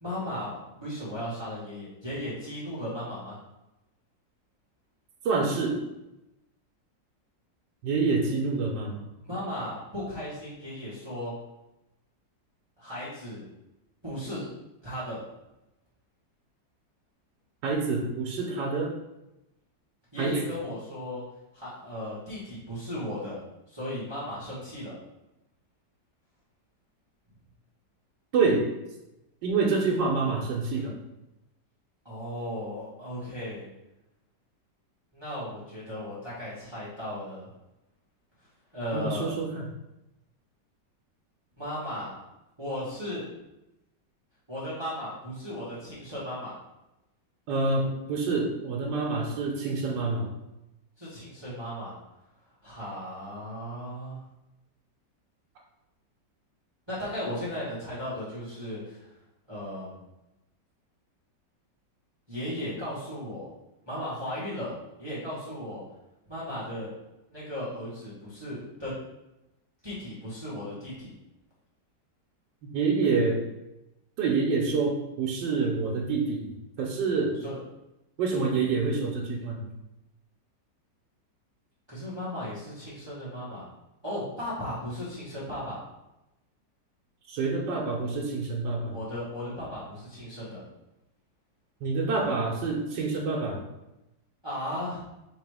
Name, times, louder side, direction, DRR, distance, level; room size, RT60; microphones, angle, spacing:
voice 1, 0.0-3.4 9.2-11.3 12.8-13.5 14.0-14.5 14.8-15.2 20.1-21.2 21.5-23.4 23.7-25.0 32.0-33.6 35.1-37.5 38.7-39.3 41.6-42.1 42.6-43.2 44.5-46.5 51.0-52.0 52.6-54.2 56.9-59.1 59.5-60.0 62.3-63.5 63.8-65.8 66.3-66.9 67.3-68.9 69.8-71.1 77.4-77.6 78.3-78.5 81.9-83.6 84.0-85.8 88.9-90.6 94.4-95.0, left 1 dB, 15° right, -10 dB, 1.4 m, -36 dB
voice 2, 5.2-5.8 7.8-9.0 17.6-18.9 20.2-20.4 28.3-28.7 29.4-30.9 38.9-39.6 47.5-50.2 72.7-73.4 74.2-76.5 76.8-77.4 78.2-79.6 87.3-88.9 91.8-93.6, right 4 dB, 80° right, -2 dB, 1.4 m, -27 dB
3.7 x 3.0 x 4.8 m, 0.94 s
omnidirectional pair, 2.0 m